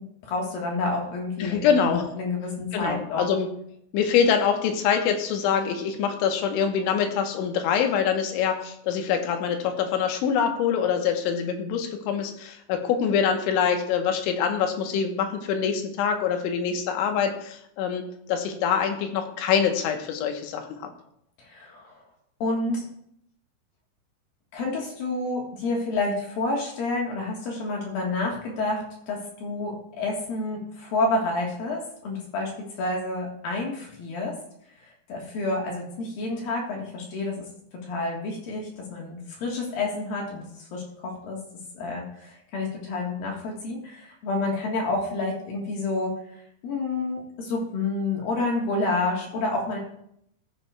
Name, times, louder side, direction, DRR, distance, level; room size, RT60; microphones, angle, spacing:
voice 1, 0.2-3.3 21.4-22.0 22.4-22.8 24.5-32.5 32.8-34.3 35.1-37.5 37.7-40.5 40.7-41.4 41.7-46.1 46.6-49.8, left 2 dB, 65° left, -1 dB, 2.7 m, -29 dB
voice 2, 1.4-2.1 2.7-3.5 3.9-20.8, left 7 dB, 85° left, 5 dB, 3.3 m, -25 dB
14.0 x 9.7 x 2.3 m, 0.73 s
omnidirectional pair, 5.3 m